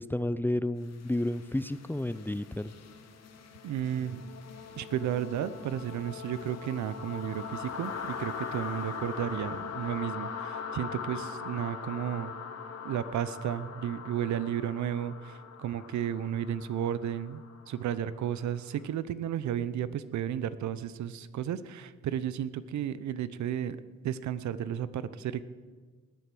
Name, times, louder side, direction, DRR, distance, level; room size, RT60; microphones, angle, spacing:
voice 1, 0.0-2.7, left 1 dB, 5° left, 14 dB, 0.4 m, -31 dB
sound 1, 0.9-18.7, left 6 dB, 60° left, 1.7 m, -41 dB
voice 2, 3.6-4.2 4.8-12.3 12.8-23.8 24.0-25.4, right 10 dB, 70° right, 15 dB, 0.8 m, -33 dB
19.0 x 8.3 x 6.1 m, 1.5 s
cardioid pair, 90°, 30 cm